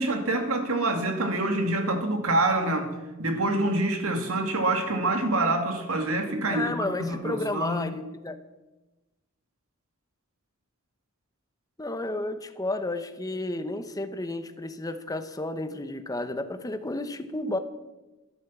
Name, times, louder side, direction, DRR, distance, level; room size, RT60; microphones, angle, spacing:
voice 1, 0.0-2.9 3.2-7.9, right 2 dB, 75° right, 5 dB, 2.2 m, -26 dB
voice 2, 6.5-8.4 11.8-17.6, left 2 dB, 15° left, 9 dB, 0.9 m, -32 dB
12.0 x 11.5 x 7.2 m, 1.1 s
head